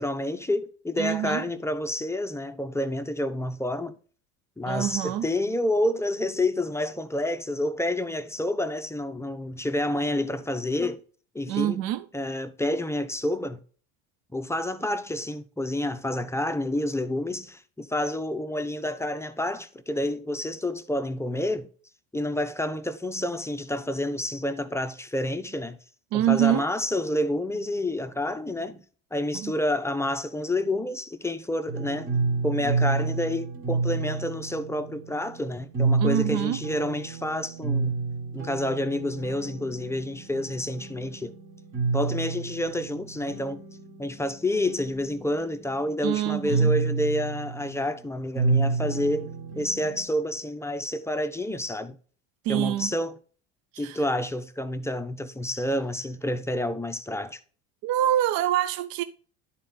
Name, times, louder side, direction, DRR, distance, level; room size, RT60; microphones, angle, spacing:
voice 1, 0.0-4.0 4.6-11.0 11.3-11.8 12.1-13.6 14.3-21.7 22.1-25.8 26.1-28.8 29.1-32.1 32.4-38.0 38.3-41.3 41.9-43.6 44.0-52.0 52.5-53.1 53.8-57.4, left 1 dB, 5° left, 0.7 m, -29 dB
voice 2, 1.0-1.4 4.7-5.3 11.5-12.1 26.1-26.7 29.3-29.5 36.0-36.6 46.0-46.7 52.4-52.9 53.7-54.0 57.8-59.0, right 12 dB, 60° right, 0.6 m, -25 dB
sound 1, 31.7-50.1, right 4 dB, 30° right, 1.6 m, -30 dB
10.5 x 4.4 x 3.8 m
hypercardioid pair, 85°, 40 cm